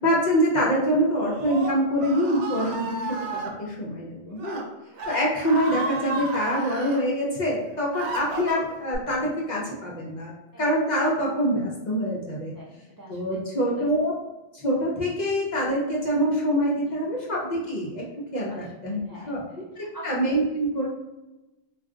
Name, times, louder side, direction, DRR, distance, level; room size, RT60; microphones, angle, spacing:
voice 1, 0.0-4.6 5.1-10.3 10.6-12.5 13.1-14.1 14.5-18.0 18.3-19.0 19.3-19.4 19.8-20.9, equal, 45° left, -4 dB, 0.7 m, -25 dB
Screaming, 1.1-3.5 4.3-4.6 4.9-7.0 7.6-9.0, right 3 dB, 80° right, 0.9 m, -33 dB
voice 2, 12.6-13.4 13.7-13.8 16.8-17.0 18.5-20.2, right 1 dB, 35° right, -6 dB, 0.3 m, -46 dB
2.4 x 2.3 x 3.6 m, 1.0 s
omnidirectional pair, 1.2 m